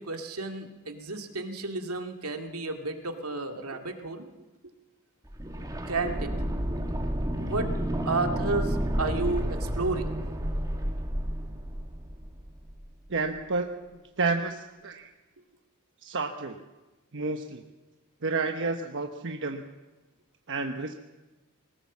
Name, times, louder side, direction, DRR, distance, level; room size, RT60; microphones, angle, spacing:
voice 1, 0.0-4.3 5.9-6.4 7.4-7.7 8.1-10.2, right 3 dB, 80° right, 5 dB, 2.3 m, -32 dB
sound 1, 5.3-13.1 13.3-13.4, equal, 15° right, 2.2 m, -31 dB
voice 2, 13.1-15.1 16.0-16.6 17.1-17.7 18.2-19.7 20.5-20.9, right 3 dB, 60° right, 5 dB, 1.1 m, -31 dB
21.5 x 19.0 x 7.4 m, 1.1 s
head